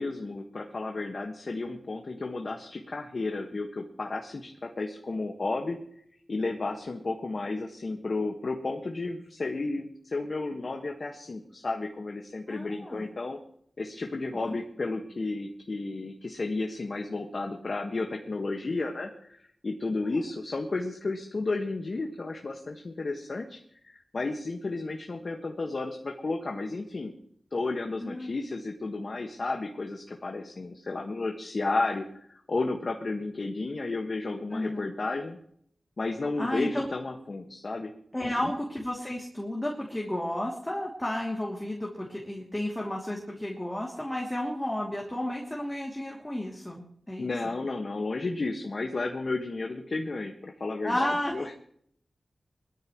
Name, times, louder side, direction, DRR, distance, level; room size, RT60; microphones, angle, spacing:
voice 1, 0.0-5.8 6.3-13.4 13.8-23.6 23.8-27.1 27.5-32.0 32.5-35.4 36.0-37.9 38.2-38.5 47.2-51.5, left 3 dB, 55° left, 2 dB, 1.6 m, -32 dB
voice 2, 12.5-13.1 14.3-14.6 28.0-28.3 34.5-34.9 36.4-36.9 38.1-47.5 50.8-51.5, left 1 dB, 15° left, -2 dB, 2.8 m, -32 dB
22.0 x 13.5 x 3.2 m, 0.64 s
wide cardioid pair, 75°, 0 cm